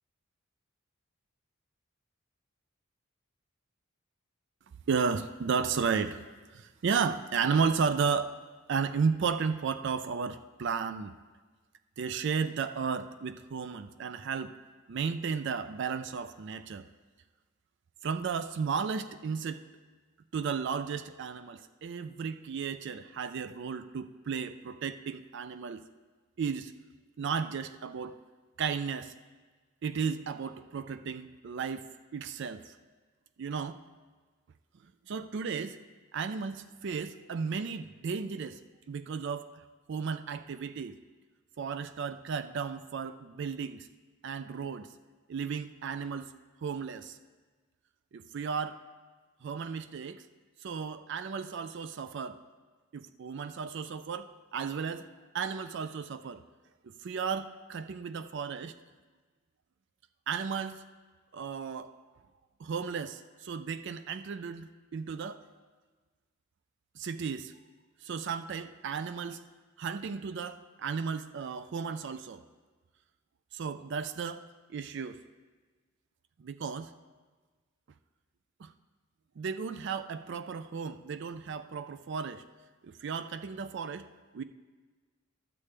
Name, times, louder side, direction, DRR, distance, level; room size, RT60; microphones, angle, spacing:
voice 1, 4.9-6.2 6.5-8.4 8.7-11.2 12.0-14.5 14.9-16.9 18.0-19.6 20.3-25.8 26.4-26.7 27.2-28.2 28.6-29.1 29.8-32.8 33.4-33.8 35.1-35.8 36.1-38.6 38.9-39.5 39.9-41.0 41.6-43.9 44.2-44.9 45.3-46.3 46.6-47.2 48.1-48.8 49.4-50.2 50.6-52.4 52.9-55.1 55.3-56.4 56.8-58.7 60.3-60.8 61.3-61.9 62.6-65.4 67.0-67.5 68.0-69.4 69.8-72.4 73.5-74.4 74.7-75.2 76.4-76.9 78.6-78.7 79.4-82.4 82.8-84.4, right 6 dB, 55° right, 11 dB, 0.4 m, -34 dB
12.5 x 8.4 x 3.3 m, 1.4 s
head